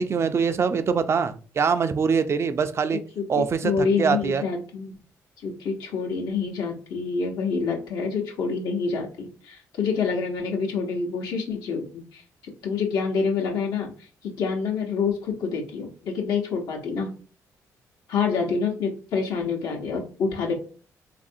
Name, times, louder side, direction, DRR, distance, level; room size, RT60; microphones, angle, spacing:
voice 1, 0.0-3.0 3.3-4.4, right 5 dB, 40° right, 10 dB, 0.4 m, -23 dB
voice 2, 3.2-4.9 5.4-12.2 12.6-13.9 14.2-17.1 18.1-20.5, left 5 dB, 85° left, 0 dB, 0.9 m, -27 dB
3.3 x 2.5 x 2.6 m, 0.38 s
cardioid pair, 85°, 7 cm